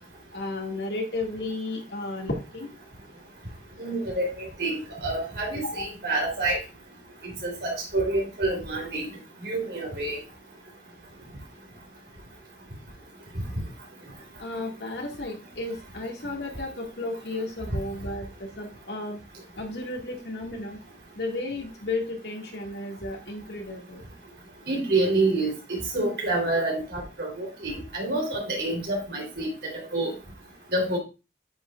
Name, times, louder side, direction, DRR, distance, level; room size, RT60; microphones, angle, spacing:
voice 1, 0.3-2.7 5.6-5.9 14.4-19.2 19.6-20.8 21.2-24.0, left 2 dB, 75° left, 1 dB, 2.1 m, -33 dB
voice 2, 3.8-6.6 7.4-9.1 9.4-10.2 24.7-25.5 25.9-30.1 30.7-31.0, right 2 dB, 70° right, -1 dB, 3.5 m, -27 dB
9.2 x 5.9 x 2.4 m, 0.28 s
head